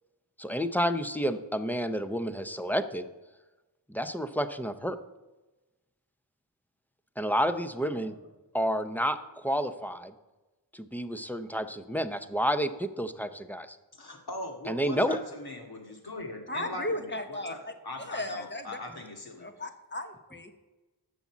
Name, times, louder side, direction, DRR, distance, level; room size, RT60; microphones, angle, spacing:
voice 1, 0.4-3.1 3.9-5.0 7.2-8.1 8.5-10.1 10.7-13.8 14.7-15.2, equal, 5° left, 10 dB, 0.6 m, -30 dB
voice 2, 7.8-8.2 13.9-17.6 17.8-19.5, left 1 dB, 65° left, 2 dB, 2.2 m, -40 dB
voice 3, 16.5-18.8 19.4-20.5, left 1 dB, 25° left, 6 dB, 1.1 m, -36 dB
10.5 x 7.2 x 7.3 m, 1.1 s
wide cardioid pair, 95°, 41 cm